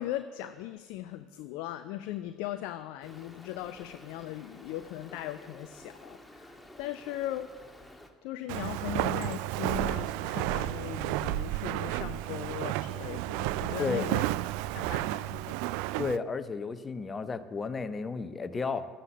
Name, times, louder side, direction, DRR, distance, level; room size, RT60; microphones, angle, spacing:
voice 1, 0.0-7.5 8.2-14.3 14.7-15.6, left 13 dB, 60° left, 10 dB, 0.5 m, -38 dB
Stream, 3.0-8.1, left 1 dB, 5° left, 1.7 m, -52 dB
Walk footsteps, 8.5-16.2, right 16 dB, 60° right, 0.3 m, -32 dB
voice 2, 16.0-18.9, left 4 dB, 25° left, 10 dB, 1.0 m, -33 dB
13.0 x 9.7 x 6.7 m, 1.4 s
figure-of-eight pair, 60°, 0 cm